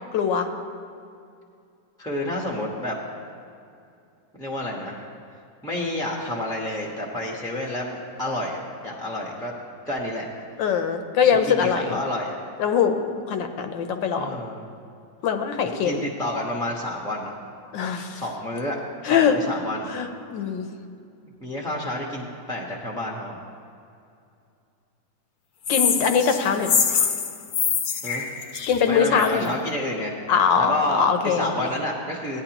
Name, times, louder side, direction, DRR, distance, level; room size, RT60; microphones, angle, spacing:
voice 1, 0.1-0.5 10.6-12.0 12.6-13.0 13.3-14.3 15.2-16.0 17.7-18.2 19.0-19.3 19.9-20.7 25.7-27.1 28.7-29.5 30.3-31.7, left 7 dB, 75° left, 6 dB, 1.4 m, -22 dB
voice 2, 2.0-3.0 4.4-5.1 5.6-9.5 9.8-10.2 11.5-12.3 14.2-14.6 15.6-17.3 18.1-18.8 19.0-19.9 21.4-23.4 28.0-28.3 28.9-30.2 30.6-32.4, left 1 dB, 5° left, -2 dB, 0.7 m, -29 dB
sound 1, 25.6-29.5, left 6 dB, 60° left, 1.0 m, -24 dB
16.0 x 10.0 x 2.9 m, 2.5 s
omnidirectional pair, 2.0 m